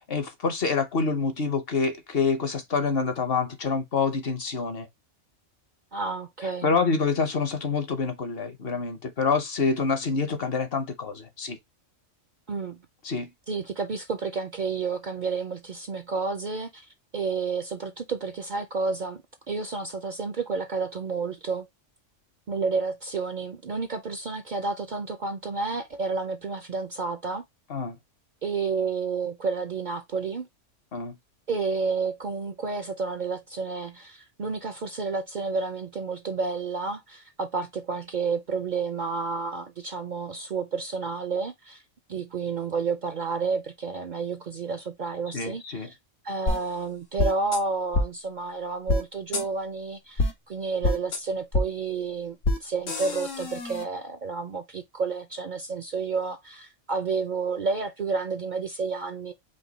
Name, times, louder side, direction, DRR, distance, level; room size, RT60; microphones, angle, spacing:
voice 1, 0.1-4.9 6.6-11.6 13.0-13.3 27.7-28.0 30.9-31.1 45.3-45.9, left 4 dB, 55° left, 1.0 m, -27 dB
voice 2, 5.9-6.7 12.5-12.8 13.5-21.7 22.5-27.4 28.4-30.5 31.5-41.8 42.1-46.0 46.2-59.3, right 4 dB, 50° right, 0.6 m, -30 dB
sound 1, 46.5-46.6 47.2-47.6 47.9-48.1 48.9-49.0 49.3-49.4 50.2-50.3 50.8-51.2 51.5-51.6 52.4-52.6 52.9-53.8, left 2 dB, 85° left, 1.6 m, -25 dB
5.2 x 2.3 x 3.9 m
omnidirectional pair, 1.3 m